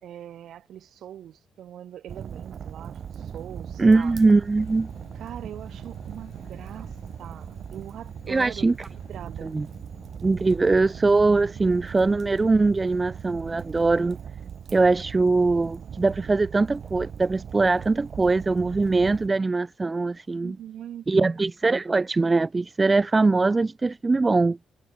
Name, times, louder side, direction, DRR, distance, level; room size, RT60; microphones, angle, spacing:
voice 1, 0.0-4.1 5.1-6.9 7.2-8.7 9.1-9.6 20.4-21.3, right 11 dB, 70° right, 2.7 m, -41 dB
Fire, 2.1-19.3, right 8 dB, 55° right, 1.9 m, -39 dB
voice 2, 3.8-4.9 8.3-8.9 9.4-9.7 10.2-14.2 14.7-20.6 21.1-24.6, right 3 dB, 25° right, 0.7 m, -22 dB
sound 1, 3.9-10.2, left 13 dB, 80° left, 3.8 m, -55 dB
cardioid pair, 90°, 0 cm